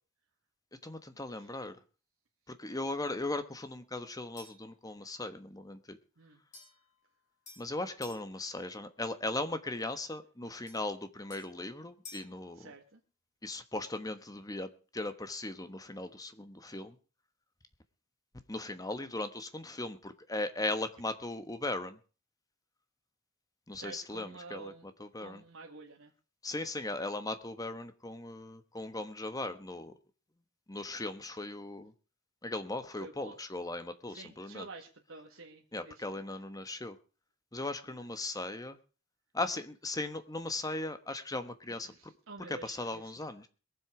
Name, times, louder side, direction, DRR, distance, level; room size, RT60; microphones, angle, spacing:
voice 1, 0.8-1.8 2.5-6.0 7.6-12.7 13.4-17.0 18.5-22.0 23.7-25.4 26.4-29.9 30.7-31.9 32.4-34.7 35.7-37.0 37.5-38.8 39.3-42.1 42.5-43.5, left 2 dB, 20° left, 10 dB, 1.2 m, -38 dB
sound 1, 4.4-4.7 6.5-8.3 10.7-12.4, left 3 dB, 35° left, 7.3 m, -54 dB
voice 2, 12.6-13.0 23.8-24.8 25.2-26.1 33.0-33.4 34.1-36.2 37.9-38.0 41.8-43.1, right 3 dB, 75° right, 1 dB, 1.7 m, -49 dB
22.0 x 7.7 x 4.9 m, 0.36 s
head